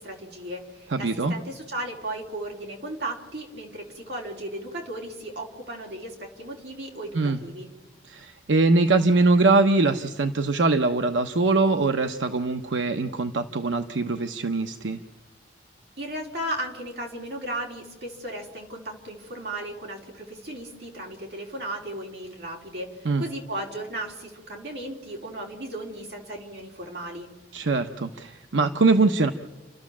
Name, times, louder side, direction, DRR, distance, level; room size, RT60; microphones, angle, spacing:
voice 1, 0.0-7.7 16.0-27.3, right 1 dB, 60° right, 0 dB, 4.0 m, -35 dB
voice 2, 0.9-1.3 7.1-7.4 8.1-15.0 23.0-23.2 27.5-29.3, right 3 dB, 85° right, 7 dB, 0.9 m, -22 dB
29.5 x 12.5 x 7.3 m, 1.2 s
head